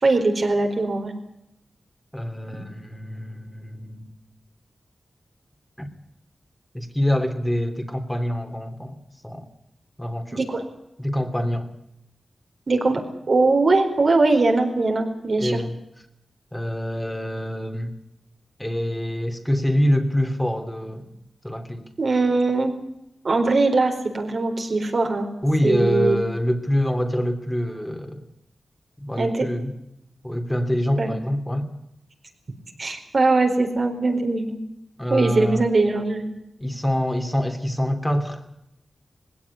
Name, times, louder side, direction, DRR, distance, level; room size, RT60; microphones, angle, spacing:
voice 1, 0.0-1.1 10.3-10.6 12.7-13.0 13.3-15.6 22.0-22.7 23.2-25.3 25.6-26.2 29.2-29.5 31.0-31.1 32.8-34.6 35.1-36.3, right 3 dB, 60° right, 3 dB, 4.5 m, -21 dB
voice 2, 2.1-4.1 5.8-5.9 6.7-9.5 10.0-10.4 11.0-11.7 15.4-15.7 16.5-18.0 18.6-21.1 21.4-21.9 25.4-28.3 29.0-29.7 30.2-31.7 35.0-35.6 36.6-38.4, equal, 10° left, 5 dB, 3.1 m, -25 dB
19.5 x 17.0 x 9.8 m, 0.83 s
cardioid pair, 55°, 0 cm